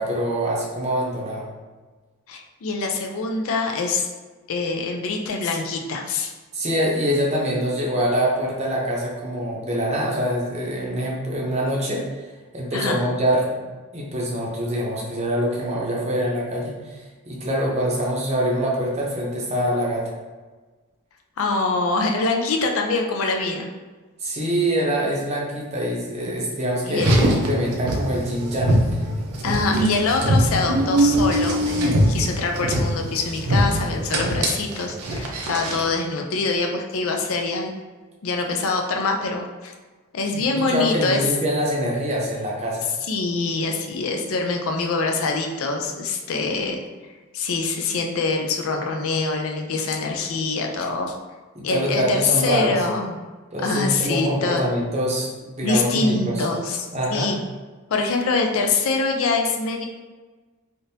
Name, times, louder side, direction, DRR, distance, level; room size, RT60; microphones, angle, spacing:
voice 1, 0.0-1.5 6.5-12.2 12.5-13.5 13.9-20.1 24.2-29.3 40.3-42.9 51.5-52.8 53.5-55.3 55.6-56.5 56.9-57.3, equal, 30° right, -3 dB, 0.7 m, -24 dB
voice 2, 2.3-4.1 4.5-6.3 12.7-13.1 21.4-23.7 26.8-27.1 29.4-37.8 38.2-39.7 40.1-41.2 43.1-46.8 47.3-51.2 51.6-53.2 53.6-54.7 55.6-57.4 57.9-59.9, left 3 dB, 65° left, 3 dB, 0.4 m, -24 dB
Car, 26.9-35.9, right 1 dB, 75° right, 0.6 m, -22 dB
3.5 x 2.5 x 2.7 m, 1.3 s
head